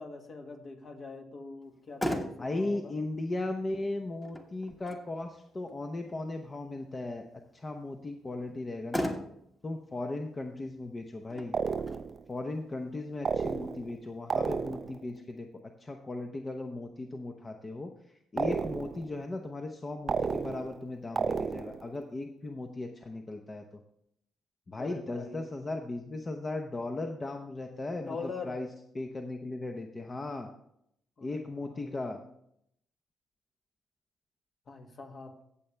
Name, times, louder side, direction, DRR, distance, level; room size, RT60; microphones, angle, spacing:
voice 1, 0.0-2.9 24.8-25.5 28.1-28.6 31.2-32.2 34.7-35.3, left 4 dB, 50° left, 3 dB, 1.8 m, -43 dB
Motor vehicle (road), 1.6-14.6, equal, 10° left, 1.4 m, -42 dB
voice 2, 2.4-7.2 7.5-9.1 9.6-11.5 12.3-15.5 15.8-17.9 18.3-23.6 24.7-28.2 28.4-28.7 28.9-30.5 31.2-32.2, left 2 dB, 25° left, 4 dB, 0.8 m, -37 dB
sound 1, 11.5-12.2 13.2-14.0 14.3-15.0 18.4-19.1 20.1-20.8 21.2-21.9, right 5 dB, 45° right, 0.4 m, -32 dB
15.5 x 7.0 x 3.3 m, 0.75 s
cardioid pair, 90°, 0 cm